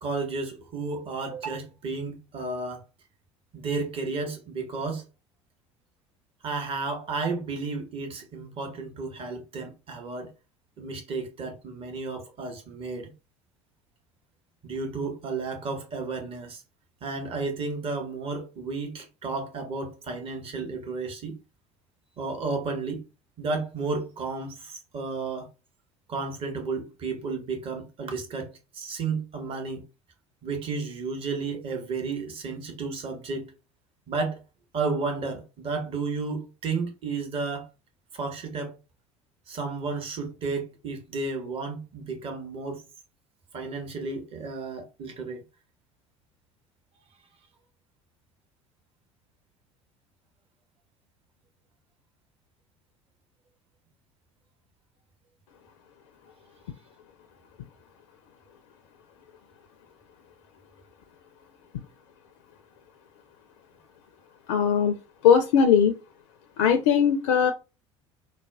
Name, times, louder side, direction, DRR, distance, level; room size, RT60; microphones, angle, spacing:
voice 1, 0.0-2.8 3.5-5.0 6.4-10.3 10.8-13.1 14.6-16.6 17.0-21.4 22.2-23.0 23.4-25.5 26.1-29.8 30.4-33.5 34.1-34.4 34.7-37.7 38.1-38.8 39.5-42.8 43.5-45.4, right 4 dB, 35° right, 1.0 m, -32 dB
voice 2, 64.5-64.9 65.2-65.9 66.6-67.5, left 7 dB, 65° left, 0.4 m, -19 dB
4.0 x 2.1 x 2.3 m
figure-of-eight pair, 65°, 16 cm